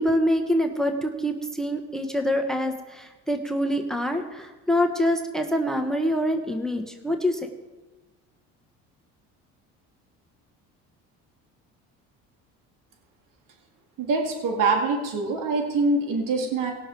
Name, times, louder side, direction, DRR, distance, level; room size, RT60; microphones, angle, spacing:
voice 1, 0.0-7.4, equal, ahead, 5 dB, 1.2 m, -25 dB
voice 2, 14.0-16.7, right 3 dB, 65° right, 2 dB, 2.2 m, -24 dB
19.0 x 6.4 x 4.5 m, 1.2 s
supercardioid pair, 85°, 34 cm